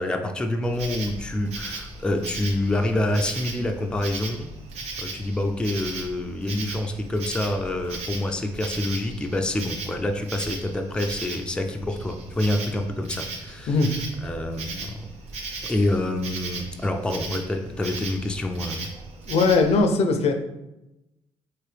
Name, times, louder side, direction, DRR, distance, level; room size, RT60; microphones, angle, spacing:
voice 1, 0.0-4.5 5.0-13.8 14.2-15.0 15.7-18.9, left 1 dB, 10° left, 4 dB, 0.4 m, -27 dB
Insect, 0.6-19.8, right 3 dB, 75° right, 0.6 m, -37 dB
voice 2, 19.3-20.3, left 3 dB, 65° left, 6 dB, 0.5 m, -19 dB
3.0 x 2.9 x 3.2 m, 0.93 s
supercardioid pair, 70°, 12 cm